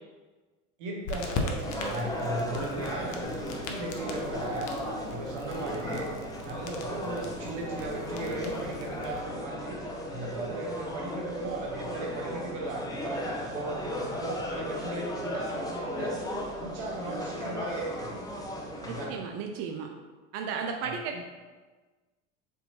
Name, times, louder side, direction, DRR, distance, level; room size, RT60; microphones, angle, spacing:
voice 1, 0.8-4.7 5.1-6.1 6.4-9.8 10.1-16.2 16.6-18.3 18.8-19.2 20.8-21.2, right 2 dB, 70° right, -1 dB, 0.9 m, -36 dB
sound 1, 1.1-9.2, left 3 dB, 50° left, 0.6 m, -40 dB
sound 2, 1.6-19.0, equal, 10° left, 0.5 m, -36 dB
voice 2, 18.9-19.9 20.3-21.2, right 6 dB, 40° right, 3 dB, 0.4 m, -34 dB
3.5 x 2.8 x 2.7 m, 1.3 s
hypercardioid pair, 80°, 38 cm